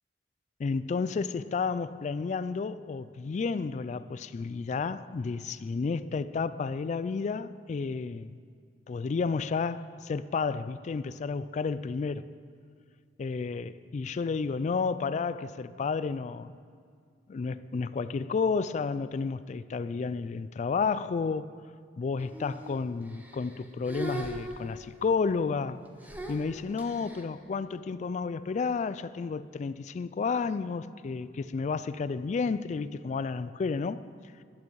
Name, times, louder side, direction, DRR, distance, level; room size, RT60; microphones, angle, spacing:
voice 1, 0.6-8.3 8.9-12.3 13.2-16.5 17.3-21.6 22.0-25.8 26.3-34.1, left 4 dB, 40° left, 0.3 m, -31 dB
sound 1, 22.2-22.7 23.1-23.6 23.9-25.1 26.0-27.2, right 1 dB, 10° right, 1.0 m, -39 dB
14.5 x 11.0 x 4.7 m
head